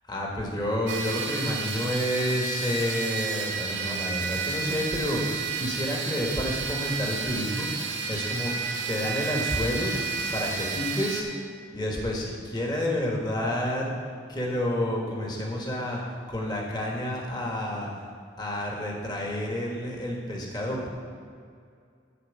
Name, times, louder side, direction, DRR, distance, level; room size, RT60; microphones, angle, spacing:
voice 1, 0.1-5.2 5.6-7.7 8.1-8.5 8.9-9.9 10.3-11.3 11.7-13.9 14.3-16.0 16.3-17.9 18.4-20.9, left 1 dB, 25° left, -2 dB, 1.5 m, -29 dB
sound 1, 0.9-11.2, right 4 dB, 85° right, 1.9 m, -31 dB
11.0 x 4.6 x 8.1 m, 2.3 s
head